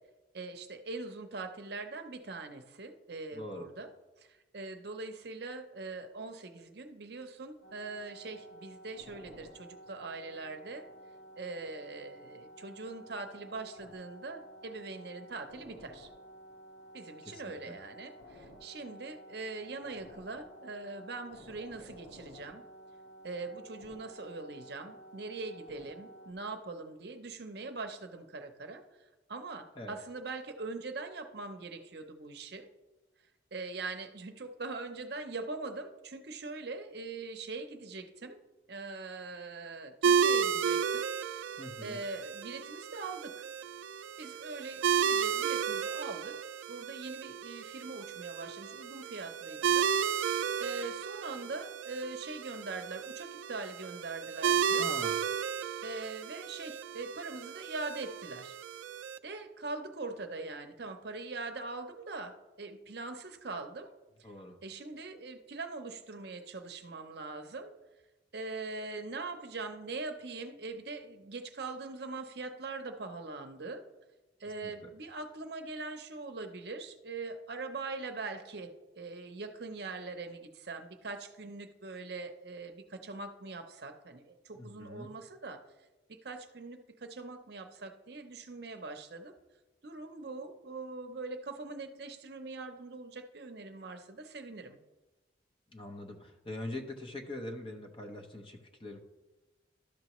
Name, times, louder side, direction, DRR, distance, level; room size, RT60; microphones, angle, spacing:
voice 1, 0.3-3.9 4.2-10.9 11.4-16.1 16.9-22.7 23.2-28.8 29.3-32.7 33.5-38.4 38.7-41.1 41.8-43.4 44.2-46.4 46.7-49.9 50.2-54.9 55.8-58.6 59.2-63.9 64.2-64.3 64.6-67.7 68.3-73.8 74.4-85.6 86.1-89.4 89.8-94.8, right 3 dB, 55° right, 7 dB, 0.7 m, -42 dB
voice 2, 3.3-3.6 17.2-17.7 29.8-30.0 41.6-42.0 54.8-55.2 64.2-64.6 74.6-74.9 84.6-85.1 95.7-99.0, left 1 dB, 25° left, 3 dB, 0.8 m, -43 dB
sound 1, 7.6-26.3, equal, 75° left, 1.5 m, -53 dB
sound 2, 40.0-59.2, right 7 dB, 80° right, 0.3 m, -33 dB
12.0 x 6.7 x 3.0 m, 1.1 s
head